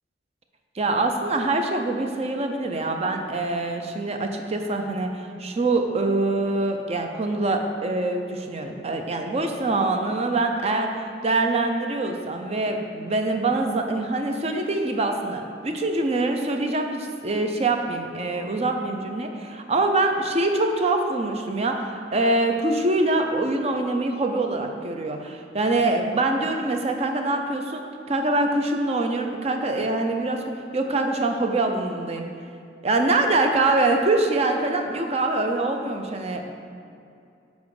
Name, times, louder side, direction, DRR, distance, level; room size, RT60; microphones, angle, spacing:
voice 1, 0.8-27.8 28.1-32.3 32.8-36.4, right 2 dB, 35° right, 4 dB, 0.6 m, -24 dB
7.3 x 5.1 x 4.9 m, 2.5 s
head